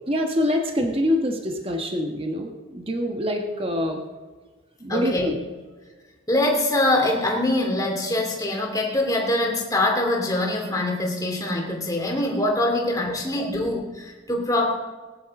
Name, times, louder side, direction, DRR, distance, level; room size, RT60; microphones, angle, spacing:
voice 1, 0.1-4.0 4.8-5.4 12.8-12.9, left 1 dB, 30° right, 3 dB, 1.4 m, -25 dB
voice 2, 4.9-5.3 6.3-14.7, left 1 dB, 20° left, 0 dB, 2.7 m, -24 dB
20.0 x 10.5 x 3.7 m, 1.3 s
head